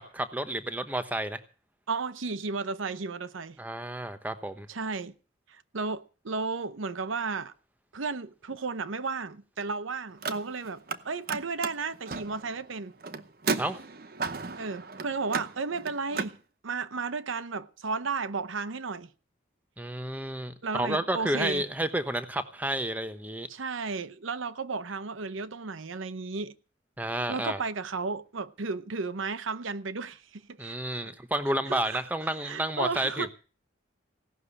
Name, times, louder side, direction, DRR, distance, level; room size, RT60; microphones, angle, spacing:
voice 1, 0.0-1.4 3.6-4.7 13.6-13.8 19.8-23.5 27.0-27.6 30.6-33.3, right 1 dB, 10° right, 1.0 m, -31 dB
voice 2, 1.9-3.6 4.7-5.1 5.5-7.5 7.9-12.9 14.6-16.4 16.6-19.1 20.6-21.6 23.5-26.5 27.3-30.8 31.7-32.0 32.4-33.3, right 4 dB, 85° right, 0.8 m, -33 dB
Car, 10.1-11.0 11.2-16.3, right 4 dB, 50° right, 0.8 m, -35 dB
17.0 x 6.4 x 9.9 m
head